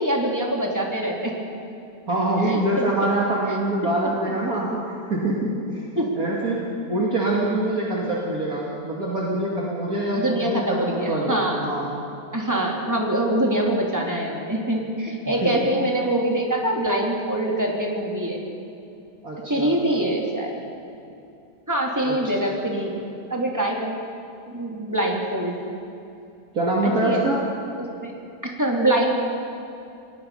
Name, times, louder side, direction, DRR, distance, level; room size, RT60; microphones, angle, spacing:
voice 1, 0.0-1.3 2.4-2.9 4.0-4.1 6.0-6.2 10.1-11.6 12.3-18.4 19.5-20.6 21.7-23.0 23.3-24.0 24.5-25.6 26.8-27.2 28.0-28.1 28.4-29.1, right 1 dB, 10° right, -1 dB, 3.1 m, -24 dB
voice 2, 2.1-4.8 5.1-5.8 6.2-11.9 15.3-15.5 19.2-19.7 22.1-22.2 26.5-27.4, right 1 dB, 60° right, -5 dB, 3.1 m, -24 dB
29.0 x 18.5 x 5.8 m, 2.7 s
omnidirectional pair, 1.7 m